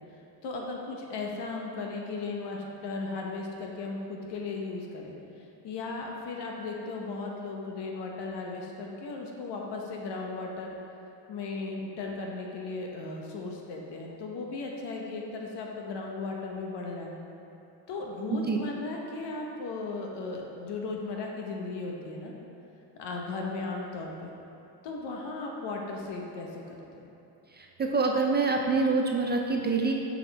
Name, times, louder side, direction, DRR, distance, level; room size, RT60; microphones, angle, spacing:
voice 1, 0.4-5.1 5.6-10.7 11.3-17.1 17.9-22.3 22.9-24.3 24.8-27.1, left 3 dB, 75° left, 0 dB, 1.1 m, -36 dB
voice 2, 27.6-29.9, right 3 dB, 25° right, 1 dB, 0.3 m, -26 dB
7.9 x 5.0 x 3.4 m, 3.0 s
cardioid pair, 135°, 42 cm